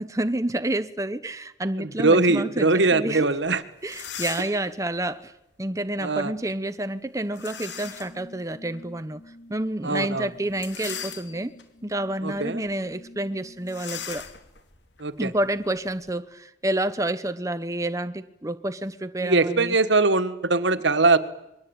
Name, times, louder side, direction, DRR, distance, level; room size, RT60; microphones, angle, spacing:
voice 1, 0.0-3.4 3.8-5.3 5.6-9.2 9.5-11.5 11.8-14.3 15.2-19.8, right 1 dB, 15° right, 10 dB, 0.9 m, -29 dB
voice 2, 1.8-3.6 6.0-6.3 9.8-10.3 12.2-12.6 15.0-15.3 19.2-21.2, right 3 dB, 75° right, 13 dB, 1.6 m, -21 dB
sound 1, 3.4-3.5 3.8-4.7 7.3-8.2 8.7-8.8 10.5-11.6 12.2-12.4 12.7-12.8 13.7-16.1, left 8 dB, 70° left, 2.6 m, -38 dB
sound 2, 7.5-14.1, left 1 dB, 45° left, 7.9 m, -50 dB
27.5 x 22.5 x 8.9 m, 0.88 s
head